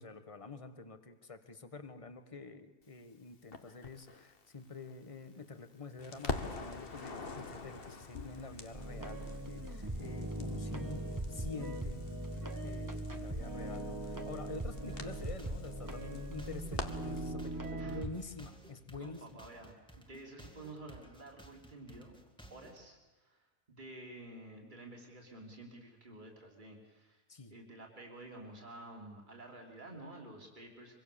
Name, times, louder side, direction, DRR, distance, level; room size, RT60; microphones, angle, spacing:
voice 1, 0.0-12.0 12.4-19.4 27.3-27.5, left 4 dB, 30° left, 10 dB, 1.4 m, -47 dB
Crackle, 3.5-5.7 6.0-17.3, left 4 dB, 50° left, 1.6 m, -46 dB
sound 1, 8.7-18.1, right 1 dB, 15° right, 1.5 m, -40 dB
sound 2, 14.9-22.8, right 1 dB, 5° left, 2.0 m, -56 dB
voice 2, 17.6-18.0 19.0-22.1 22.5-27.2 27.5-31.0, right 2 dB, 40° right, 0 dB, 3.5 m, -51 dB
24.5 x 24.0 x 7.0 m, 1.2 s
omnidirectional pair, 1.2 m